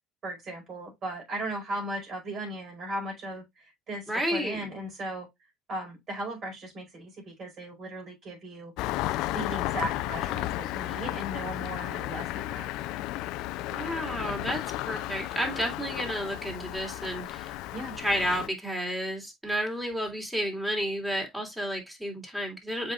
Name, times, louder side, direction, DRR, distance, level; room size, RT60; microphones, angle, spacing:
voice 1, 0.2-5.3 5.7-8.7 9.3-12.7 17.7-18.0, right 1 dB, 45° right, 4.9 m, -37 dB
voice 2, 4.1-4.6 13.7-17.5 18.0-22.9, equal, 10° right, 3.4 m, -31 dB
Engine starting, 8.8-18.5, left 15 dB, 70° left, 0.4 m, -33 dB
7.6 x 5.0 x 2.5 m
hypercardioid pair, 75°, 0 cm